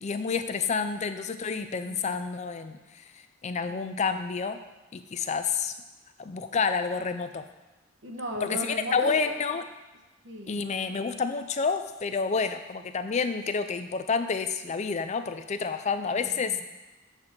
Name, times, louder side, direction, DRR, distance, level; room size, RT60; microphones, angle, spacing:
voice 1, 0.0-3.0 3.4-4.6 4.9-5.7 6.2-7.4 8.4-9.6 10.5-16.6, left 5 dB, 35° left, 10 dB, 0.4 m, -29 dB
voice 2, 1.6-2.2 3.7-4.0 8.0-9.3 10.2-10.6 16.1-16.6, right 1 dB, 60° right, 1 dB, 1.1 m, -37 dB
7.8 x 4.0 x 5.9 m, 1.1 s
head